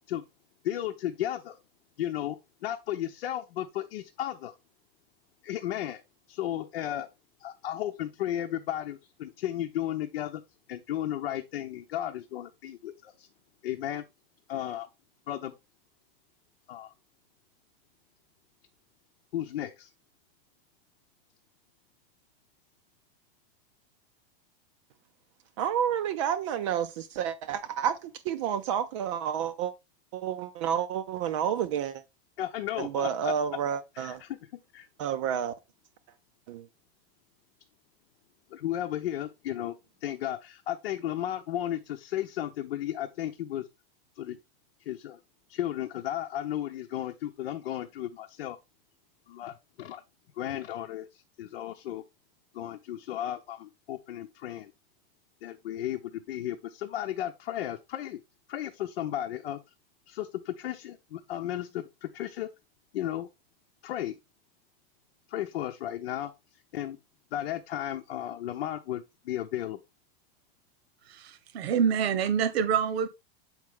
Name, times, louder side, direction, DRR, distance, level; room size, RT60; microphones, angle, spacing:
voice 1, 0.6-1.6 2.0-4.5 5.4-6.0 6.3-7.1 7.4-10.4 10.7-13.3 13.6-14.0 14.5-14.9 15.3-15.5 16.7-16.9 19.3-19.9 32.4-33.3 33.7-34.4 34.7-34.9 38.5-43.7 44.2-44.4 44.9-45.2 45.5-48.6 49.3-50.0 50.4-52.0 52.5-54.7 55.4-58.2 58.5-59.6 60.1-62.5 62.9-63.3 63.8-64.2 65.3-66.3 66.7-67.0 67.3-69.8, left 12 dB, 80° left, 0.9 m, -34 dB
voice 2, 25.6-29.7 30.1-32.0 32.8-34.2 35.0-35.5 36.5-36.7, right 9 dB, 30° right, 0.4 m, -30 dB
voice 3, 71.1-73.1, right 7 dB, 85° right, 1.1 m, -26 dB
7.4 x 4.8 x 3.5 m
supercardioid pair, 165°, 30 cm